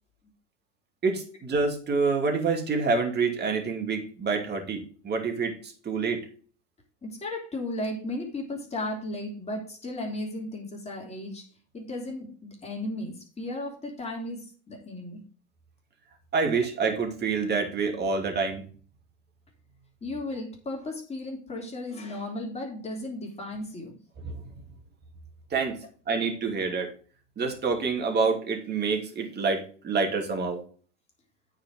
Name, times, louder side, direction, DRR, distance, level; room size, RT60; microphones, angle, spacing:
voice 1, 1.0-6.2 16.3-18.6 24.2-24.4 25.5-25.8 26.1-26.9 27.4-30.6, right 4 dB, 30° right, 3 dB, 2.8 m, -27 dB
voice 2, 7.0-11.5 11.7-15.2 20.0-24.0, left 1 dB, 20° left, 0 dB, 3.5 m, -35 dB
9.1 x 5.1 x 5.4 m, 0.42 s
hypercardioid pair, 95°, 35 cm